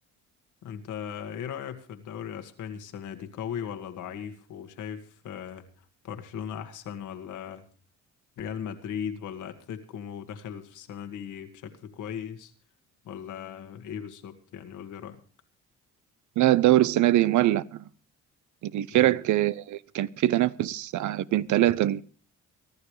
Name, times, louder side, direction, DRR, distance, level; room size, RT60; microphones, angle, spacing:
voice 1, 0.6-7.6 8.4-12.5 13.0-15.2 18.9-19.2, left 8 dB, 80° left, 1.9 m, -38 dB
voice 2, 16.4-17.8 18.6-22.0, right 14 dB, 75° right, 0.7 m, -23 dB
24.0 x 12.0 x 3.2 m
cardioid pair, 90°, 30 cm